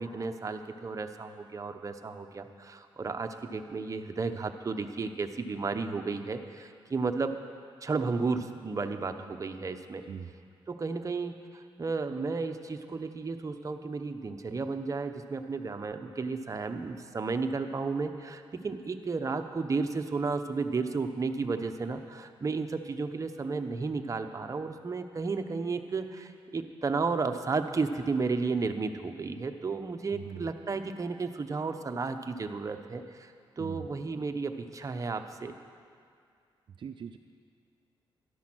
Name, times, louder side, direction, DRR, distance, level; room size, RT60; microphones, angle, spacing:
voice 1, 0.0-7.4 7.8-10.0 10.7-35.5, right 4 dB, 35° right, 7 dB, 0.9 m, -33 dB
voice 2, 30.1-30.5 33.6-33.9 36.8-37.2, right 7 dB, 60° right, 6 dB, 0.5 m, -41 dB
13.0 x 12.0 x 6.2 m, 2.3 s
cardioid pair, 95°, 9 cm